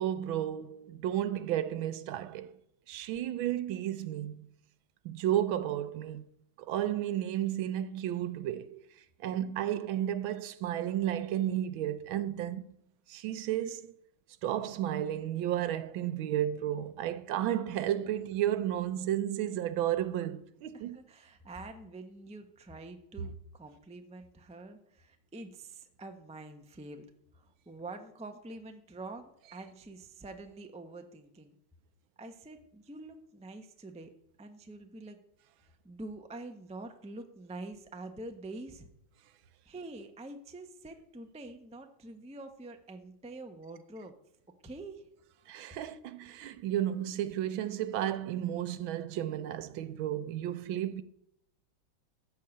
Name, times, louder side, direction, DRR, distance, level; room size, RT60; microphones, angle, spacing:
voice 1, 0.0-2.5 2.9-4.5 5.0-6.2 6.6-8.9 9.2-12.7 13.1-13.9 14.4-21.0 45.5-51.0, right 11 dB, 80° right, 1.5 m, -32 dB
voice 2, 20.7-27.1 27.3-31.5 32.2-34.1 34.4-35.2 35.6-38.9 39.7-44.1 44.6-45.1, right 2 dB, 10° right, 0.3 m, -46 dB
14.0 x 4.6 x 8.7 m
omnidirectional pair, 2.2 m